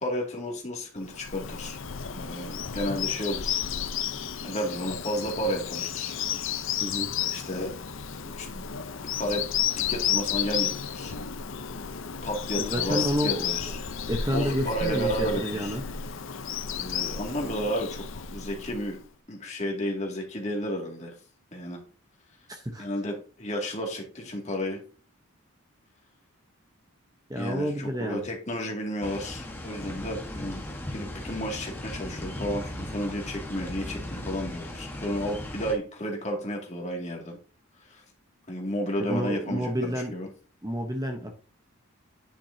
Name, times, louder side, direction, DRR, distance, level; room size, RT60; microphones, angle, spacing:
voice 1, 0.0-1.8 2.1-3.6 4.4-6.2 7.2-7.7 8.4-8.6 9.2-9.4 9.7-11.1 12.2-13.8 14.3-15.8 16.8-19.0 19.3-21.1 21.5-21.8 22.8-24.8 27.4-30.6 30.9-37.4 37.8-38.0 38.5-40.3, equal, 30° left, 0 dB, 2.3 m, -32 dB
Bird vocalization bird call bird song, 1.0-19.0, left 8 dB, 60° left, 0.7 m, -32 dB
voice 2, 6.8-7.1 12.6-13.4 14.1-15.8 22.5-22.9 27.3-28.2 39.0-40.1 40.6-41.4, equal, 15° right, 3 dB, 0.9 m, -29 dB
sound 1, 29.0-35.7, left 1 dB, 10° left, 1.3 m, -37 dB
10.0 x 6.1 x 2.8 m, 0.37 s
head